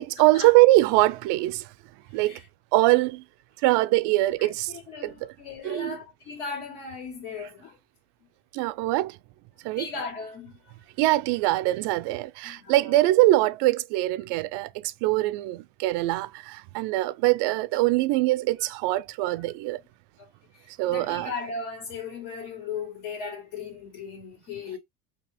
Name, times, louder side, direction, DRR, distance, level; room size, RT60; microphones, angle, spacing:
voice 1, 0.2-1.6 2.1-2.4 2.7-3.2 3.6-4.7 5.0-5.3 5.6-6.0 8.5-9.2 9.6-9.9 11.0-19.8 20.8-21.3, right 18 dB, 70° right, 0.5 m, -23 dB
voice 2, 4.4-7.8 9.7-10.6 12.4-13.0 20.2-20.3 20.9-24.8, left 5 dB, 85° left, 1.7 m, -37 dB
2.8 x 2.4 x 3.3 m
supercardioid pair, 90°, 43 cm